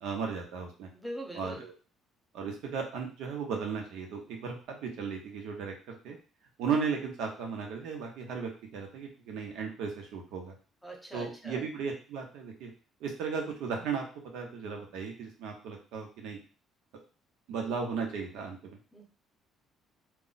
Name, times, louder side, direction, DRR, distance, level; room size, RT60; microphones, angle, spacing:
voice 1, 0.0-0.9 1.3-1.7 2.3-6.2 6.6-10.5 11.1-12.7 13.0-14.0 14.3-16.4 17.5-18.8, right 5 dB, 80° right, 2 dB, 0.8 m, -35 dB
voice 2, 0.9-1.7 10.8-11.6 18.9-19.0, equal, ahead, 0 dB, 0.6 m, -42 dB
2.3 x 2.1 x 3.9 m, 0.36 s
cardioid pair, 140°, 0 cm